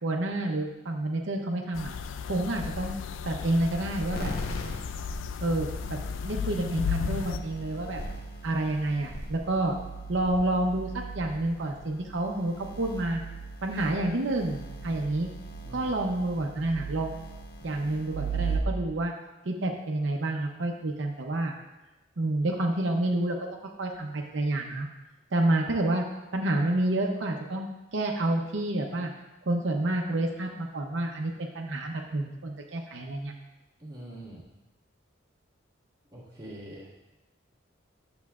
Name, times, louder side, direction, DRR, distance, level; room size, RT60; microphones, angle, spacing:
voice 1, 0.0-1.9 2.3-3.0 3.3-4.3 5.4-6.0 6.2-8.0 8.4-9.8 10.1-13.2 13.6-15.3 15.7-17.2 17.6-19.1 19.4-21.5 22.2-23.4 23.8-24.9 25.3-26.0 26.3-29.1 29.5-33.3, right 1 dB, 75° right, 1 dB, 0.7 m, -29 dB
sound 1, 1.8-7.4, left 6 dB, 80° left, 0.3 m, -34 dB
sound 2, 4.1-18.6, right 4 dB, 50° left, 0.9 m, -39 dB
voice 2, 15.6-15.9 33.8-34.6 36.1-37.1, right 1 dB, 20° right, -7 dB, 1.8 m, -44 dB
10.5 x 6.8 x 2.4 m, 1.0 s
head